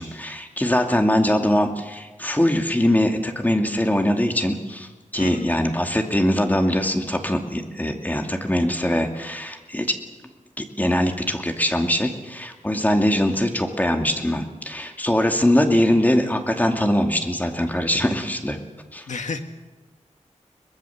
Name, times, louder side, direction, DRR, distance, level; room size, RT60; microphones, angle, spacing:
voice 1, 0.0-4.9 5.1-10.0 10.6-18.6 18.9-19.1, left 1 dB, 15° left, 4 dB, 2.4 m, -22 dB
voice 2, 5.2-5.6 19.1-19.4, left 4 dB, 75° left, 6 dB, 1.9 m, -30 dB
23.0 x 20.5 x 7.2 m, 1.2 s
wide cardioid pair, 105°, 13 cm